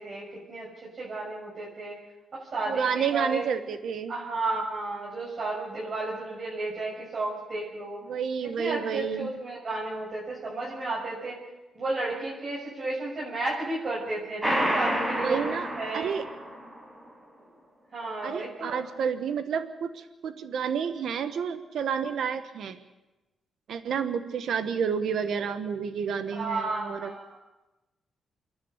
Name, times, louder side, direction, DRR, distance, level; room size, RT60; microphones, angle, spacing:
voice 1, 0.0-2.0 2.3-3.4 4.1-8.0 8.6-11.4 11.7-15.4 15.8-16.1 17.9-18.8 26.3-27.4, right 2 dB, 50° right, -6 dB, 6.8 m, -33 dB
voice 2, 2.7-4.1 8.1-9.3 15.2-16.2 18.2-22.8 23.7-27.1, right 7 dB, 75° right, 9 dB, 1.3 m, -30 dB
sound 1, 14.4-16.8, equal, 10° right, 4.9 m, -29 dB
28.0 x 11.5 x 8.3 m, 1.0 s
cardioid pair, 110°, 0 cm